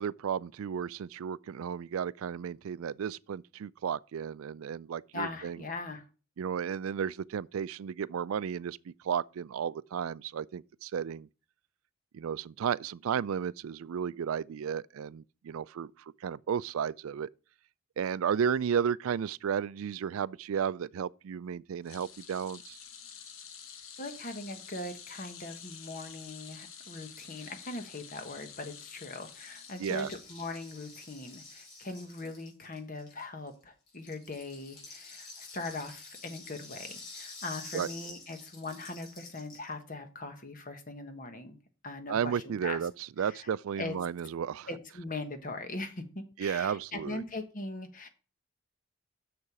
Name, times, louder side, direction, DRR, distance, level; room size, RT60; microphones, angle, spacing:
voice 1, 0.0-5.6 6.4-11.3 12.1-15.9 16.2-17.3 18.0-22.8 29.8-30.1 37.7-37.9 42.1-44.7 46.4-47.2, right 7 dB, 75° right, 0.3 m, -33 dB
voice 2, 5.1-6.0 24.0-41.6 41.8-42.8 43.2-43.5 43.8-44.0 44.7-48.1, left 2 dB, 40° left, 1.2 m, -40 dB
sound 1, 21.8-30.3 30.7-30.9 32.1-32.2, left 7 dB, 70° left, 1.0 m, -49 dB
Rattle (instrument), 25.9-26.0 26.1-26.2 26.4-33.5 33.9-39.7, left 3 dB, 85° left, 4.2 m, -49 dB
6.9 x 6.7 x 4.8 m
head